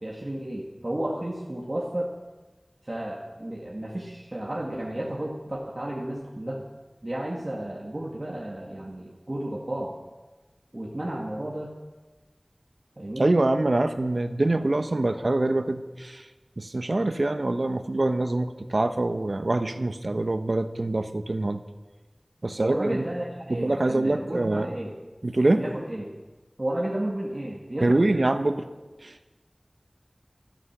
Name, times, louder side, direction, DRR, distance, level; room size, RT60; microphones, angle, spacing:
voice 1, 0.0-2.1 2.8-6.6 7.0-10.0 10.7-11.7 13.0-13.3 22.6-24.9 25.5-26.1 26.6-28.2, right 1 dB, 50° right, -2 dB, 1.9 m, -32 dB
voice 2, 13.2-16.3 16.6-21.6 22.4-23.0 23.5-24.7 25.2-25.6 27.8-28.7 29.0-29.2, right 2 dB, 80° right, 9 dB, 0.9 m, -25 dB
14.0 x 13.0 x 6.1 m, 1.2 s
wide cardioid pair, 40°, 0 cm